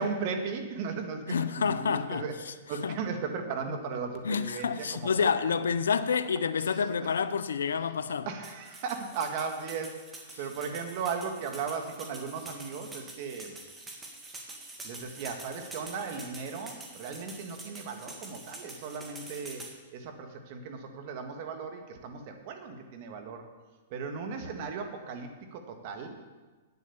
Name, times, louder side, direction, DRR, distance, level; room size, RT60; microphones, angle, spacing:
voice 1, 0.0-2.3 2.7-5.3 8.3-13.6 14.8-19.6 19.9-23.4 23.9-26.1, right 5 dB, 50° right, 1.7 m, -36 dB
voice 2, 1.3-2.5 2.8-3.0 4.2-8.3, left 6 dB, 85° left, 0.6 m, -29 dB
sound 1, 8.4-19.7, right 2 dB, 10° right, 1.8 m, -46 dB
9.0 x 8.3 x 7.0 m
hypercardioid pair, 130°, 0 cm